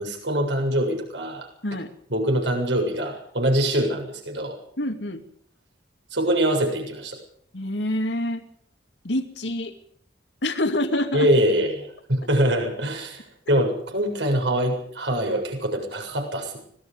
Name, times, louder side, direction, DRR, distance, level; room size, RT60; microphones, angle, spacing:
voice 1, 0.0-1.5 2.1-4.6 6.1-7.2 11.1-16.6, right 1 dB, 85° right, 3 dB, 7.3 m, -24 dB
voice 2, 4.8-5.2 7.5-8.5 9.0-9.8 10.4-11.3, left 1 dB, 85° left, 7 dB, 2.5 m, -26 dB
25.5 x 20.0 x 5.3 m, 0.64 s
head